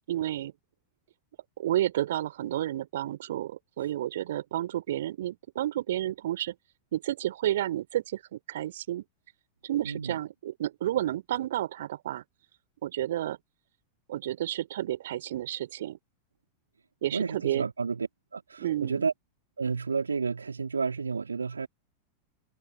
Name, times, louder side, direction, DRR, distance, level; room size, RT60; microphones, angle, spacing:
voice 1, 0.1-0.5 1.6-6.5 6.9-9.0 9.6-12.2 12.8-13.4 14.1-16.0 17.0-17.7 18.6-19.0, right 13 dB, 60° right, 3.7 m, -31 dB
voice 2, 9.8-10.2 17.1-18.1 18.3-19.1 19.6-21.7, right 5 dB, 75° right, 3.3 m, -31 dB
open air
figure-of-eight pair, 90°, 0 cm